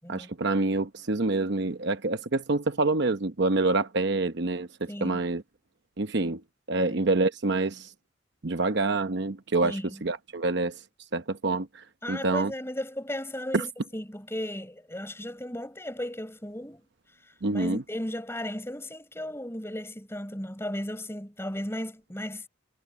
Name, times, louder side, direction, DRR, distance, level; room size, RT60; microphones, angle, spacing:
voice 1, 0.1-5.4 6.0-6.4 6.7-7.9 8.4-10.8 11.1-12.5 13.5-13.6 17.4-17.8, right 3 dB, 55° right, 0.9 m, -27 dB
voice 2, 4.9-5.3 6.7-7.0 9.6-10.0 12.0-16.8 17.5-22.5, left 1 dB, 10° left, 7.5 m, -35 dB
head